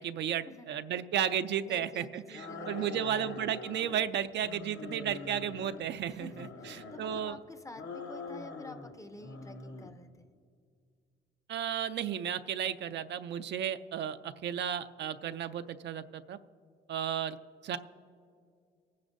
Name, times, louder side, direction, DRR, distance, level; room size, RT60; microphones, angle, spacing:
voice 1, 0.0-7.3 11.5-16.4 16.9-17.4 17.6-17.8, right 9 dB, 60° right, 10 dB, 0.4 m, -34 dB
voice 2, 1.6-3.3 6.0-10.3, left 2 dB, 15° left, 9 dB, 0.6 m, -50 dB
sound 1, 2.3-4.1 4.4-5.9 6.3-7.3 7.7-8.9 9.2-9.9, left 4 dB, 70° left, 1.2 m, -44 dB
26.5 x 9.6 x 2.6 m, 2.2 s
cardioid pair, 90°, 20 cm